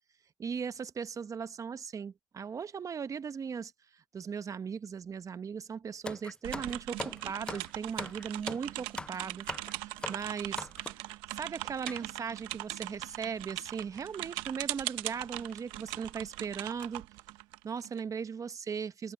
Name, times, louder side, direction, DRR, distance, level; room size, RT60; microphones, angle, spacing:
voice 1, 0.4-3.7 4.1-9.5 9.7-17.1 17.6-19.1, right 6 dB, 40° right, 1.0 m, -38 dB
sound 1, 6.0-11.1 11.9-12.0 12.8-12.9 13.0-13.2 14.2-14.4 14.9-15.0 15.5-15.6 16.0-16.3 16.6-16.8, left 2 dB, 10° left, 0.4 m, -42 dB
sound 2, 6.4-18.0, right 19 dB, 85° right, 0.9 m, -40 dB
open air
supercardioid pair, 65°, 8 cm